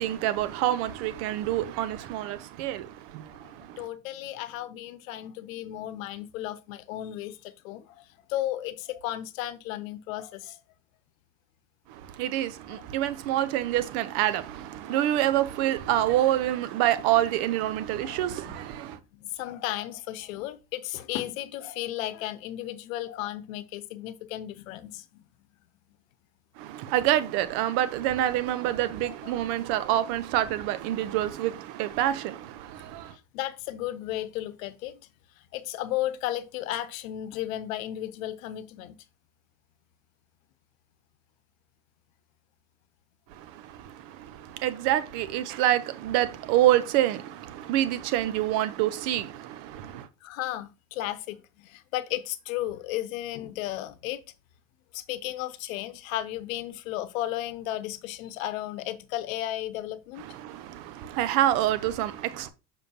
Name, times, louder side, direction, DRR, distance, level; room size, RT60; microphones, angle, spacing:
voice 1, 0.0-3.8 11.9-19.0 26.6-33.1 43.3-50.1 60.2-62.5, right 13 dB, 70° right, 1.0 m, -27 dB
voice 2, 3.8-10.6 12.7-12.8 14.9-15.1 18.0-18.2 18.4-18.5 19.1-25.2 29.2-29.3 33.1-35.0 35.5-39.0 50.2-54.2 54.9-60.3, left 14 dB, 80° left, 0.8 m, -34 dB
6.8 x 5.7 x 2.9 m
hypercardioid pair, 80°, 40 cm